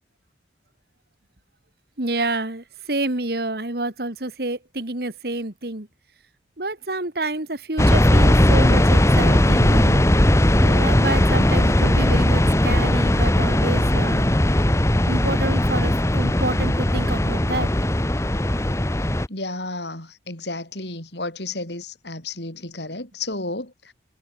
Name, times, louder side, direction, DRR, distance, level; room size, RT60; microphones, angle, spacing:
voice 1, 2.0-5.9 6.6-10.0 10.6-14.3 15.1-17.7, right 2 dB, 55° right, 2.2 m, -28 dB
sound 1, 7.8-19.3, left 1 dB, 15° left, 0.9 m, -18 dB
voice 2, 19.3-23.7, left 2 dB, 70° left, 6.6 m, -32 dB
head